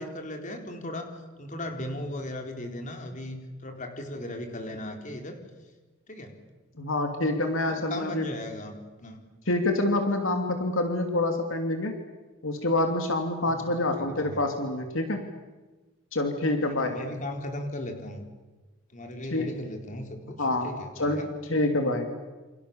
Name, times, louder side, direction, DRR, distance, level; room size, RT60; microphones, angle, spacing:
voice 1, 0.0-5.4 6.1-6.4 7.7-8.7 9.0-9.2 13.5-13.8 14.1-14.4 16.7-18.2 18.9-20.4 20.6-21.3, left 1 dB, 40° left, 4 dB, 4.2 m, -37 dB
voice 2, 6.8-8.3 9.5-11.9 12.4-15.2 16.1-17.0 19.3-19.5 20.4-20.7 21.0-22.3, left 2 dB, 75° left, 5 dB, 2.9 m, -27 dB
28.5 x 28.0 x 7.2 m, 1.2 s
head